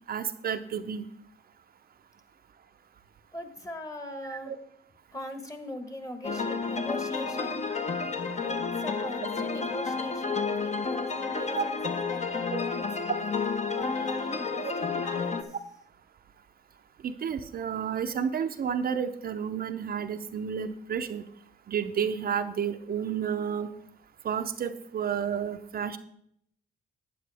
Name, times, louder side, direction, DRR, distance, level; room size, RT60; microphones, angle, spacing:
voice 1, 0.1-1.1 4.3-4.6 11.6-11.7 12.5-12.6 14.6-14.7 17.0-21.2 21.7-23.7 24.2-26.0, right 7 dB, 50° right, 7 dB, 0.7 m, -31 dB
voice 2, 3.3-4.5 5.1-7.6 8.4-12.8 13.7-15.4, left 1 dB, 15° left, 8 dB, 1.3 m, -40 dB
sound 1, 6.2-15.4, left 4 dB, 35° left, 0.9 m, -31 dB
11.5 x 8.6 x 3.4 m, 0.70 s
cardioid pair, 90°, 20 cm